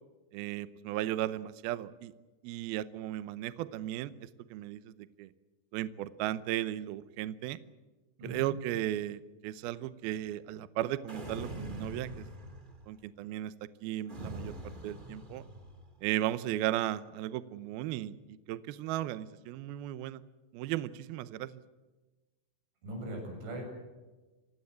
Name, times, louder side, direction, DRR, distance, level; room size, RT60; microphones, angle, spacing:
voice 1, 0.3-2.1 2.4-5.3 5.7-7.6 8.2-12.3 12.9-13.5 13.8-14.6 14.8-15.4 16.0-20.2 20.5-21.6, right 13 dB, 85° right, 15 dB, 2.1 m, -36 dB
voice 2, 8.2-8.5 22.8-23.6, right 1 dB, 65° right, 2 dB, 9.1 m, -40 dB
sound 1, 11.1-12.9 14.1-15.9, right 1 dB, 35° right, 0.7 m, -43 dB
28.5 x 16.5 x 8.1 m, 1.2 s
omnidirectional pair, 5.6 m